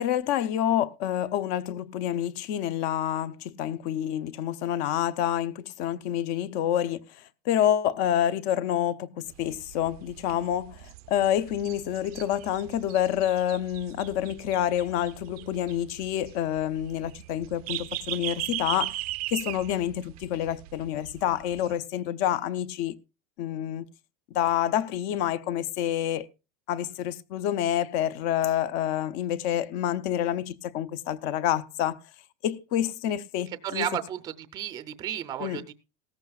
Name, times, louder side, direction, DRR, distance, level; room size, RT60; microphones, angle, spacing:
voice 1, 0.0-7.0 7.5-19.0 19.3-22.9 23.4-23.9 24.3-26.3 26.7-32.0 32.4-33.9 35.4-35.6, left 11 dB, 45° left, 0.6 m, -28 dB
sound 1, 9.3-21.8, right 19 dB, 70° right, 0.6 m, -39 dB
voice 2, 33.5-35.7, right 11 dB, 20° right, 0.5 m, -33 dB
17.0 x 14.0 x 2.3 m
supercardioid pair, 165°, 19 cm